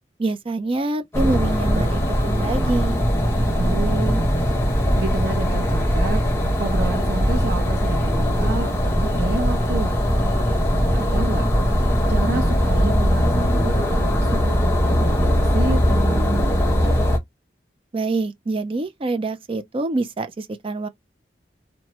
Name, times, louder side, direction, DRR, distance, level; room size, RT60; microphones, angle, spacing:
voice 1, 0.2-3.0 17.9-20.9, right 2 dB, 30° right, 0.5 m, -25 dB
sound 1, 1.1-17.2, equal, 15° left, 1.0 m, -20 dB
voice 2, 3.5-6.3 6.6-10.0 10.9-11.5 12.1-17.0, right 3 dB, 75° right, 0.8 m, -30 dB
2.9 x 2.2 x 2.8 m
head